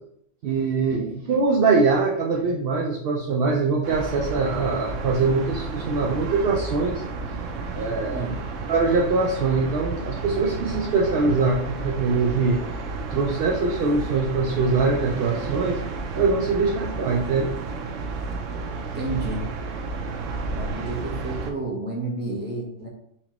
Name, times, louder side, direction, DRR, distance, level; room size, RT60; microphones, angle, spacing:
voice 1, 0.4-7.0 7.7-8.3 8.7-15.8 16.1-17.6, right 4 dB, 60° right, 0 dB, 0.6 m, -23 dB
sound 1, 3.8-21.5, right 3 dB, 90° right, 0.9 m, -32 dB
voice 2, 18.9-19.5 20.5-22.9, right 3 dB, 10° right, -4 dB, 0.9 m, -30 dB
4.3 x 2.9 x 2.9 m, 0.71 s
omnidirectional pair, 1.3 m